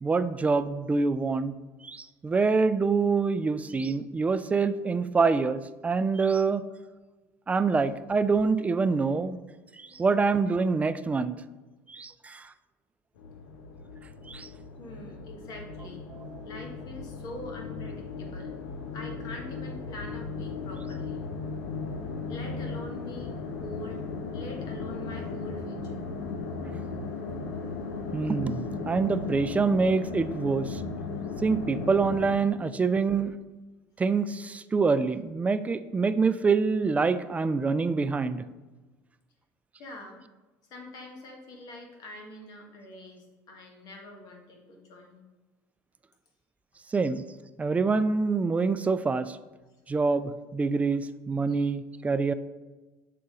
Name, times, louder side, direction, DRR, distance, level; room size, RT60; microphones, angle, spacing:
voice 1, 0.0-1.5 1.8-6.6 7.5-9.4 9.8-11.4 11.9-12.4 14.3-14.5 28.1-30.8 31.4-33.3 34.0-38.5 46.9-47.2 47.6-49.4 49.9-52.3, right 4 dB, 20° right, 13 dB, 0.3 m, -26 dB
sound 1, 13.2-32.3, left 4 dB, 85° left, 0.7 m, -36 dB
voice 2, 14.8-16.1 16.4-18.6 18.9-21.3 22.3-23.3 23.6-24.0 24.3-26.0 39.8-40.2 40.7-45.2 51.5-51.7, left 1 dB, 55° left, 2 dB, 1.4 m, -44 dB
6.6 x 3.9 x 3.8 m, 1.2 s
supercardioid pair, 90°, 8 cm